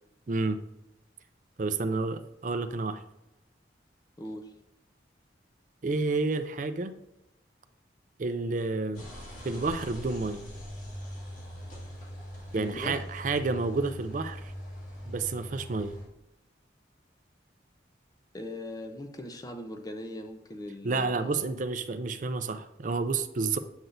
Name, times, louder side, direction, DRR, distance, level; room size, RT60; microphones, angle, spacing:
voice 1, 0.3-0.6 1.6-3.0 5.8-6.9 8.2-9.0 9.4-10.5 12.5-14.5 15.1-16.0 20.8-23.6, right 3 dB, 45° right, 10 dB, 0.5 m, -30 dB
voice 2, 4.2-4.5 12.5-13.0 18.3-21.4, left 1 dB, 20° left, 5 dB, 0.7 m, -40 dB
sound 1, 8.9-16.1, equal, 40° left, 2.4 m, -42 dB
7.9 x 6.0 x 2.6 m, 0.91 s
head